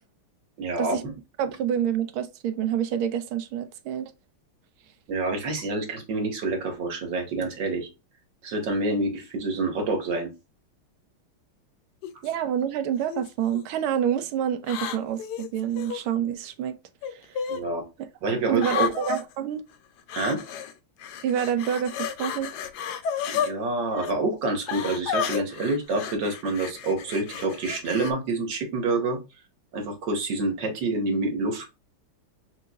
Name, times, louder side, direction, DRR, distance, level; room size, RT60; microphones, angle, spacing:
voice 1, 0.6-1.1 5.1-7.9 8.4-10.3 17.5-17.8 18.2-18.9 20.1-20.4 23.3-29.2 29.7-31.7, right 2 dB, 60° right, 1.8 m, -27 dB
voice 2, 1.4-4.1 12.2-16.8 17.1-17.3 18.5-19.6 21.2-22.5, right 9 dB, 80° right, 1.4 m, -27 dB
sound 1, 12.0-12.3 13.1-13.6 14.6-16.0 17.0-17.6 18.6-19.2 20.1-20.7 21.0-23.5 23.9-24.1 24.7-28.1, left 7 dB, 75° left, 0.9 m, -32 dB
5.6 x 3.0 x 2.3 m
omnidirectional pair, 2.4 m